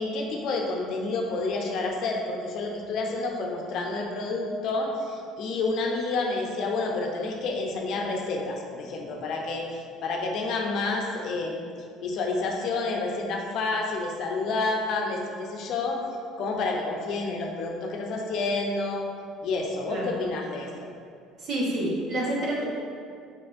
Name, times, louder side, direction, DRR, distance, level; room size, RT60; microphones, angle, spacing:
voice 1, 0.0-11.6 12.0-16.0 16.4-19.0 19.4-20.9, left 3 dB, 65° left, 1 dB, 0.6 m, -29 dB
voice 2, 19.9-20.2 21.4-22.6, right 1 dB, 55° right, -4 dB, 1.2 m, -28 dB
4.8 x 4.2 x 2.6 m, 2.3 s
cardioid pair, 110°, 0 cm